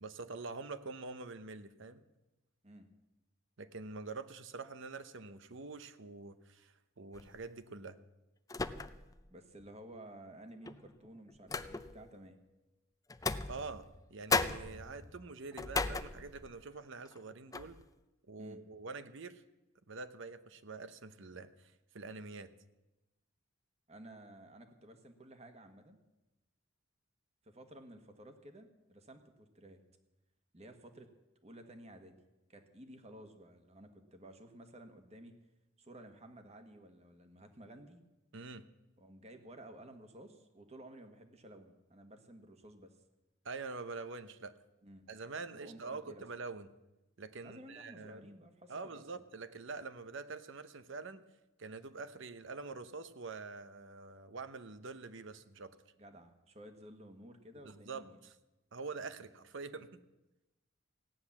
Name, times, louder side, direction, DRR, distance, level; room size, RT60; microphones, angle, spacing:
voice 1, 0.0-2.0 3.6-8.0 13.5-17.8 18.3-19.4 19.9-22.5 38.3-38.6 43.4-44.6 45.1-46.7 47.2-48.3 48.7-51.2 51.6-55.8 57.6-58.4 58.7-60.0, right 4 dB, 65° right, 12 dB, 0.9 m, -45 dB
sound 1, 7.1-7.5 8.5-9.2 9.6-9.7 10.6-12.1 13.1-14.0 14.3-16.6 17.0-17.2 17.5-17.9, left 3 dB, 15° left, 0.5 m, -37 dB
voice 2, 9.3-12.4 18.4-18.6 23.9-26.0 27.4-29.8 30.5-31.1 31.4-32.1 32.5-35.4 35.8-38.0 39.0-43.0 44.8-45.1 45.5-46.2 47.4-49.2 56.0-58.2, right 1 dB, 30° right, 7 dB, 1.6 m, -54 dB
16.0 x 9.9 x 7.3 m, 1.0 s
head